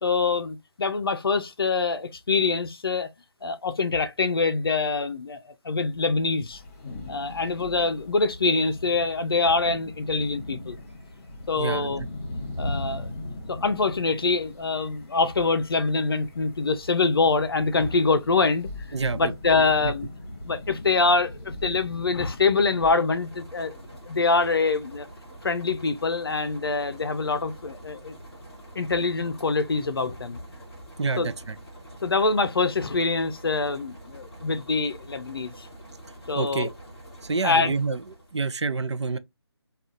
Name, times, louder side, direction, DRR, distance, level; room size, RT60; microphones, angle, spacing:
voice 1, 0.0-3.1 3.4-6.6 7.1-10.8 11.5-12.1 12.6-13.1 13.5-18.7 19.1-20.1 20.4-23.8 24.1-25.1 25.4-28.1 28.8-30.4 31.2-31.3 32.0-35.7 36.3-36.7 37.4-37.8, left 4 dB, 55° left, 0.5 m, -25 dB
sound 1, 6.5-22.9, left 1 dB, 30° left, 0.9 m, -39 dB
voice 2, 11.6-11.9 18.9-19.3 19.6-19.9 31.0-31.5 36.4-36.7 37.2-38.0 38.3-39.2, right 4 dB, 85° right, 0.5 m, -28 dB
sound 2, 22.6-38.4, right 1 dB, 5° left, 0.7 m, -46 dB
3.6 x 2.4 x 2.4 m
figure-of-eight pair, 165°, 14 cm